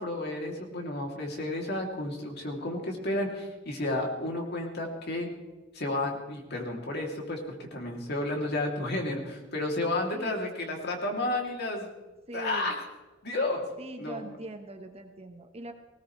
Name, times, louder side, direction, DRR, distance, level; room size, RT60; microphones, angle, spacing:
voice 1, 0.0-5.3 5.7-7.4 7.7-11.9 12.3-12.8 13.2-13.6 14.0-14.3, left 2 dB, 60° left, 1 dB, 2.9 m, -32 dB
voice 2, 12.3-12.7 13.8-15.7, right 2 dB, 30° right, 5 dB, 1.3 m, -41 dB
19.5 x 17.5 x 3.3 m, 1.2 s
head